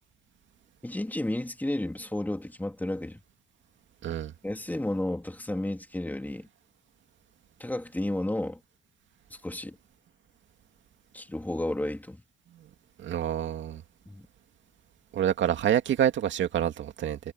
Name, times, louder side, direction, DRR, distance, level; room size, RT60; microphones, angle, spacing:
voice 1, 0.8-3.2 4.4-6.5 7.6-8.6 9.3-9.8 11.1-12.2 14.1-14.3, left 1 dB, 10° left, 3.2 m, -32 dB
voice 2, 13.0-13.8 15.1-17.2, right 10 dB, 70° right, 2.3 m, -27 dB
cardioid pair, 90°, 20 cm